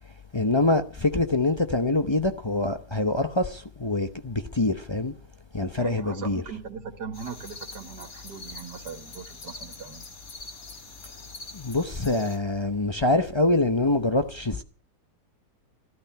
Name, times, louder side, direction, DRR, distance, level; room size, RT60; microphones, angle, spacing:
voice 1, 0.3-5.1 5.5-6.4 11.5-14.6, left 2 dB, 30° left, 0.5 m, -25 dB
voice 2, 5.7-10.1, right 6 dB, 85° right, 2.4 m, -39 dB
sound 1, 7.1-12.4, left 3 dB, 55° left, 2.5 m, -44 dB
14.0 x 12.0 x 5.8 m
omnidirectional pair, 1.7 m